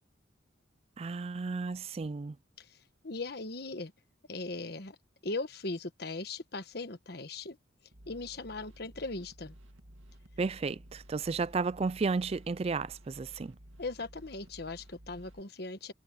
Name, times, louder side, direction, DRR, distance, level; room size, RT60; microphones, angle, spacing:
voice 1, 1.0-2.4 10.4-13.5, right 4 dB, 30° right, 0.3 m, -33 dB
voice 2, 3.0-3.9 4.3-5.0 5.2-7.6 8.1-9.5 13.8-15.9, left 3 dB, 55° left, 1.4 m, -39 dB
sound 1, 7.9-15.4, equal, 85° right, 2.3 m, -54 dB
head